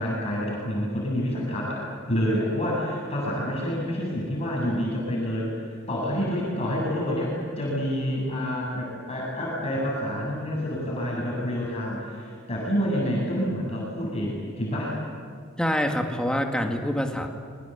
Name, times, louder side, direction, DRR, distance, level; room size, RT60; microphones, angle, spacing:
voice 1, 0.0-1.8 2.1-5.5 5.9-14.9, equal, 30° left, -4 dB, 7.8 m, -28 dB
voice 2, 15.6-17.3, equal, 5° left, 3 dB, 2.2 m, -25 dB
27.0 x 23.5 x 8.3 m, 2.1 s
head